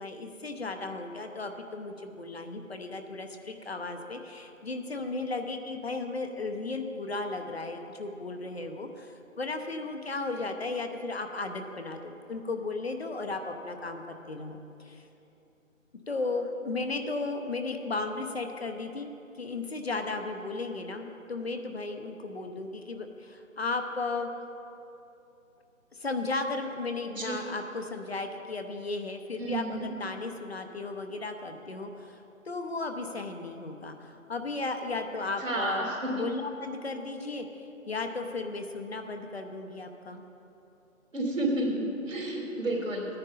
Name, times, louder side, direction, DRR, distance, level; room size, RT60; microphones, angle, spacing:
voice 1, 0.0-15.1 16.1-19.1 19.4-24.3 25.9-35.9 36.1-40.3, left 3 dB, 50° left, 5 dB, 0.9 m, -35 dB
voice 2, 29.4-29.9 35.4-36.3 41.1-43.1, right 1 dB, 70° right, -2 dB, 3.1 m, -31 dB
14.5 x 9.7 x 4.1 m, 2.8 s
figure-of-eight pair, 160°, 40 cm